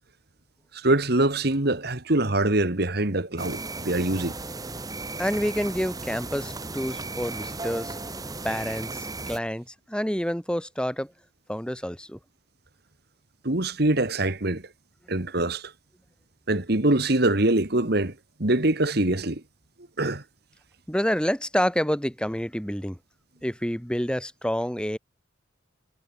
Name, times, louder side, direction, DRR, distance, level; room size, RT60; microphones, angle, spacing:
voice 1, 0.7-4.3 13.4-14.6 15.1-15.7 16.5-19.4 20.0-20.2, right 2 dB, 55° right, 2.1 m, -24 dB
sound 1, 3.4-9.4, right 3 dB, 20° right, 2.2 m, -35 dB
voice 2, 5.2-8.0 8.4-11.1 11.5-12.2 20.9-23.0 23.4-25.0, equal, 5° left, 3.9 m, -28 dB
head